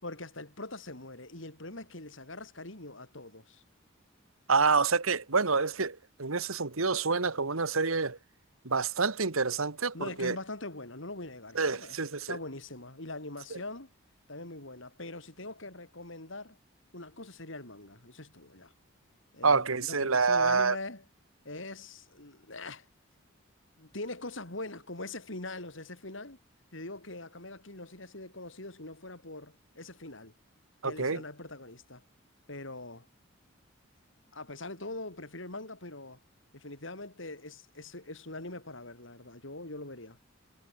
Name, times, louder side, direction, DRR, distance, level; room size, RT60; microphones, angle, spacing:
voice 1, 0.0-3.6 9.9-12.0 12.3-13.9 14.3-16.6 16.9-18.7 19.3-21.0 21.4-22.9 23.8-26.4 26.7-30.3 30.8-32.0 32.5-33.1 34.3-36.2 36.5-40.2, left 2 dB, 65° left, 4.5 m, -42 dB
voice 2, 4.5-8.2 8.6-10.4 11.5-12.4 19.4-20.8 30.8-31.2, right 4 dB, 85° right, 1.7 m, -27 dB
head